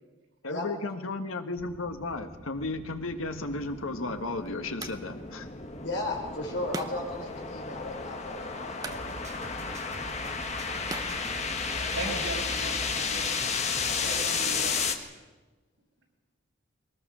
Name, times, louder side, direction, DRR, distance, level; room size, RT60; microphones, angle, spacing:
voice 1, 0.4-5.5, left 2 dB, 85° left, 7 dB, 1.7 m, -34 dB
sound 1, 1.6-15.0, left 5 dB, 35° left, 1.4 m, -33 dB
sound 2, 3.6-12.1, right 3 dB, 20° right, 0.8 m, -46 dB
voice 2, 5.8-9.0 11.7-12.2 13.8-14.8, left 2 dB, 60° left, 0 dB, 5.3 m, -36 dB
sound 3, 8.9-14.3, right 1 dB, 35° right, 1.2 m, -43 dB
voice 3, 11.9-13.3 14.0-14.9, right 3 dB, 85° right, -1 dB, 6.0 m, -38 dB
22.5 x 19.5 x 6.4 m, 1.2 s
head